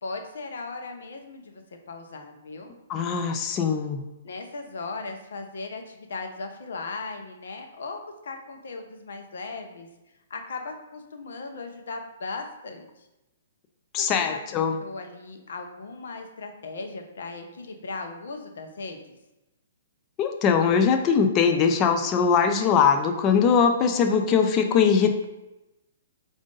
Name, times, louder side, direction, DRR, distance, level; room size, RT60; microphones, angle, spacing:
voice 1, 0.0-2.7 4.2-9.9 10.3-13.1 14.0-19.0, left 3 dB, 75° left, 5 dB, 0.8 m, -37 dB
voice 2, 2.9-4.0 13.9-14.7 20.2-25.2, left 6 dB, 30° left, 6 dB, 0.4 m, -21 dB
4.9 x 2.6 x 3.8 m, 0.97 s
hypercardioid pair, 135°, 0 cm